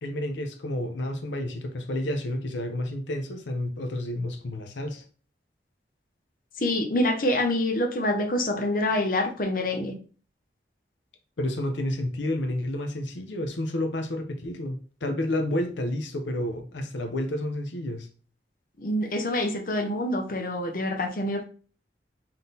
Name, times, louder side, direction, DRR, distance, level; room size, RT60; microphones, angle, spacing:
voice 1, 0.0-5.0 11.4-18.1, left 1 dB, 90° left, 0.6 m, -30 dB
voice 2, 6.6-9.9 18.8-21.4, left 1 dB, 50° left, 0.7 m, -26 dB
3.7 x 2.7 x 3.9 m
head